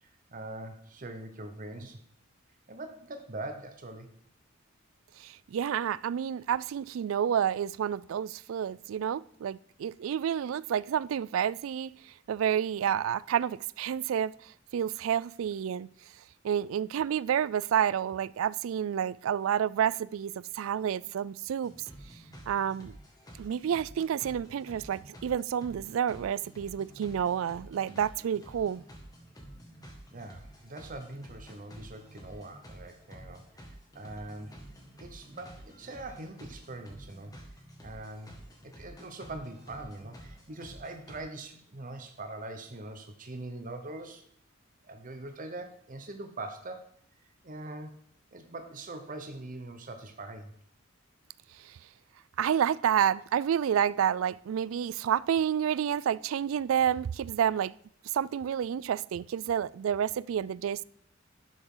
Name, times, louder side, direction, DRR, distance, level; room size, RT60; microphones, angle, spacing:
voice 1, 0.0-2.0 2.7-4.1 30.1-34.5 35.0-37.3 37.8-38.4 38.6-44.2 44.8-46.8 47.4-47.9 48.3-50.5, right 2 dB, 40° right, 0.9 m, -42 dB
voice 2, 5.2-15.9 16.4-21.7 22.5-23.0 23.4-28.8 51.5-51.8 52.4-57.7 58.0-60.8, right 9 dB, 75° right, 0.3 m, -29 dB
sound 1, 21.6-41.2, equal, 20° left, 1.8 m, -50 dB
11.5 x 7.1 x 3.8 m
head